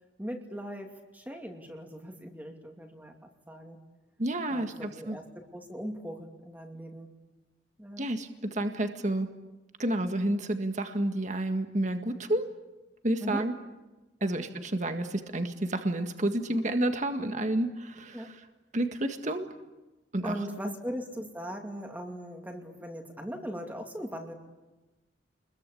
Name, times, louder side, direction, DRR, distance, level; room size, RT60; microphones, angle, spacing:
voice 1, 0.2-3.8 4.5-5.2 5.5-7.1 7.8-8.1 13.2-13.5 14.2-14.4 18.1-18.3 20.2-24.3, equal, 10° right, 2 dB, 2.6 m, -39 dB
voice 2, 4.2-5.2 8.0-9.3 9.8-12.5 13.0-13.5 14.2-18.4 18.7-19.5 20.1-20.4, right 1 dB, 40° right, 6 dB, 1.8 m, -30 dB
29.5 x 22.0 x 8.6 m, 1.1 s
head